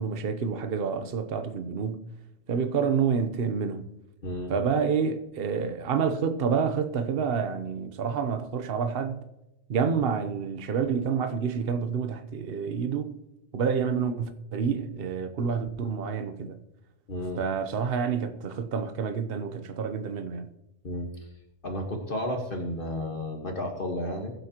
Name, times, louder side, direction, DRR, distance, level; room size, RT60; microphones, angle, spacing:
voice 1, 0.0-2.0 2.5-3.9 4.5-9.2 9.7-13.1 13.5-16.6 17.4-20.5, right 6 dB, 55° right, 1.0 m, -28 dB
voice 2, 17.1-17.4 20.8-21.3 21.6-24.3, left 1 dB, 50° left, 1.7 m, -32 dB
20.0 x 8.0 x 2.9 m
omnidirectional pair, 1.2 m